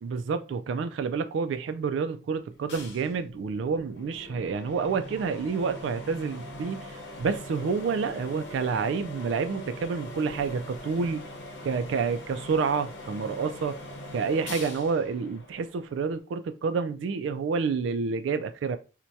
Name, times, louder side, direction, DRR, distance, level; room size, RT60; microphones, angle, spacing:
voice 1, 0.0-11.2 11.6-13.8 14.1-18.8, right 5 dB, 75° right, 0.3 m, -29 dB
sound 1, 2.7-16.2, left 1 dB, 60° left, 0.9 m, -42 dB
4.4 x 2.2 x 2.7 m
head